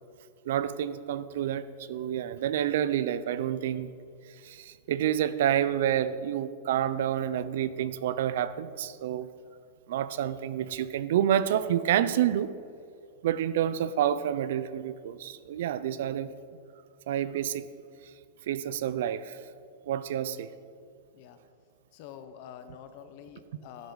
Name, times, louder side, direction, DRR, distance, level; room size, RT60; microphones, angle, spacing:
voice 1, 0.5-3.9 4.4-9.3 9.9-12.5 13.2-16.3 17.1-17.7 18.5-19.4 19.9-20.5, right 10 dB, 60° right, 15 dB, 0.5 m, -28 dB
voice 2, 21.9-23.9, left 9 dB, 40° left, 9 dB, 0.8 m, -47 dB
12.0 x 10.5 x 3.9 m, 2.3 s
supercardioid pair, 175°, 0 cm